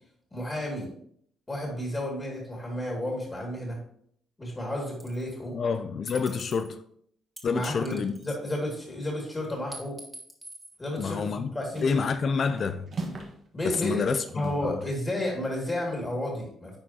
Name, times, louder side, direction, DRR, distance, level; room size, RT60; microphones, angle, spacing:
voice 1, 0.3-0.9 1.5-3.8 4.4-5.6 7.5-10.0 10.8-12.3 13.5-14.0 14.3-16.8, left 1 dB, 25° left, 2.4 m, -32 dB
sound 1, 5.0-5.3 6.1-6.7 7.4-8.6 9.7-10.8, right 1 dB, 10° right, 1.9 m, -45 dB
voice 2, 5.5-6.8 7.4-8.1 11.0-11.5 11.8-12.9 13.6-14.8, left 5 dB, 50° left, 0.4 m, -28 dB
sound 2, 11.3-11.4 11.7-12.2 12.5-13.4 13.7-15.0, right 3 dB, 50° right, 1.5 m, -40 dB
10.5 x 4.5 x 2.9 m
cardioid pair, 90°, 0 cm